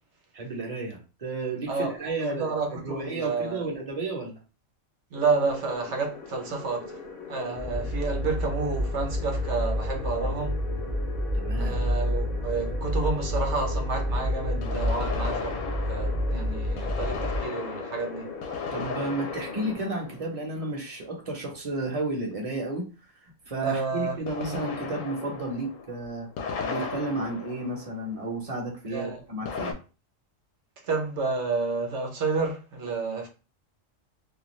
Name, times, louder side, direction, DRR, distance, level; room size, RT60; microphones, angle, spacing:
voice 1, 0.3-4.4 11.3-11.8 18.7-22.9 23.4-26.3 26.7-29.7, right 2 dB, 35° right, 0.6 m, -32 dB
voice 2, 1.7-3.7 5.1-7.0 7.3-10.6 11.6-15.6 15.9-18.3 23.6-24.6 28.9-29.2 30.8-33.3, right 4 dB, 65° right, 1.0 m, -30 dB
sound 1, 5.1-19.7, left 4 dB, 55° left, 0.7 m, -40 dB
sound 2, 7.6-17.4, equal, 20° left, 0.6 m, -29 dB
sound 3, 10.7-10.8 14.6-21.1 24.3-28.5 29.5-29.7, left 5 dB, 80° left, 1.0 m, -36 dB
2.5 x 2.3 x 3.0 m
omnidirectional pair, 1.3 m